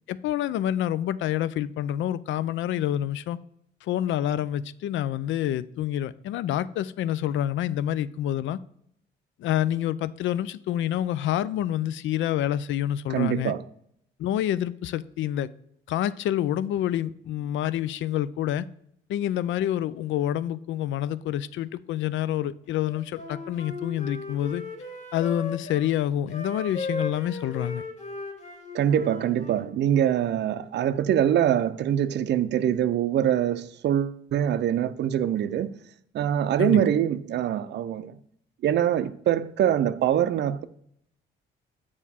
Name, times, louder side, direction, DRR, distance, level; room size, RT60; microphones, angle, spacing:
voice 1, 0.1-3.4 3.8-8.6 9.4-13.5 14.2-15.5 15.9-18.7 19.1-24.6 25.1-27.8 36.6-36.8, left 11 dB, 75° left, 0.4 m, -27 dB
voice 2, 13.1-13.6 28.7-35.7 36.1-38.2 38.6-40.6, right 10 dB, 60° right, 0.5 m, -24 dB
Wind instrument woodwind instrument, 22.9-25.8 26.3-29.7, left 2 dB, 35° left, 2.0 m, -37 dB
7.2 x 4.8 x 4.2 m
cardioid pair, 90°, 20 cm